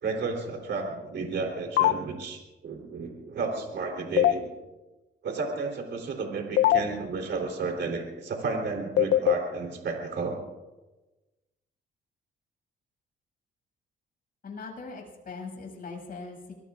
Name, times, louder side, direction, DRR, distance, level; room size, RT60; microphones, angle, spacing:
voice 1, 0.0-4.5 5.2-10.4, right 4 dB, 60° right, 2 dB, 3.5 m, -32 dB
sound 1, 1.8-1.9 4.2-4.3 6.6-6.8 9.0-9.3, left 13 dB, 75° left, 0.6 m, -19 dB
voice 2, 14.4-16.5, left 4 dB, 45° left, 1 dB, 6.7 m, -40 dB
25.0 x 21.5 x 2.5 m, 1.1 s
cardioid pair, 90°, 20 cm